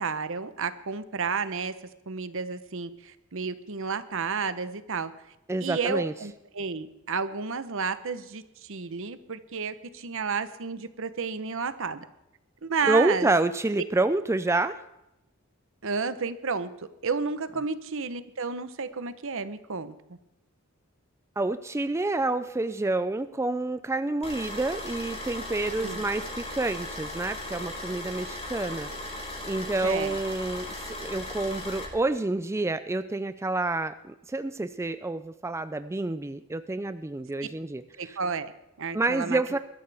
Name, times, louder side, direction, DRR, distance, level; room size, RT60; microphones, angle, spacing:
voice 1, 0.0-1.7 2.1-5.1 5.6-12.0 12.6-13.3 15.8-16.7 17.0-19.9 25.8-26.0 29.8-30.2 38.0-38.5 38.8-39.6, right 5 dB, 70° right, 12 dB, 0.9 m, -31 dB
voice 2, 5.5-6.1 12.9-14.8 21.4-28.9 29.4-30.7 31.0-38.2 38.9-39.6, right 2 dB, 15° right, 11 dB, 0.4 m, -28 dB
sound 1, 24.2-31.8, left 1 dB, 30° left, 4.8 m, -37 dB
21.5 x 13.0 x 3.5 m, 0.91 s
head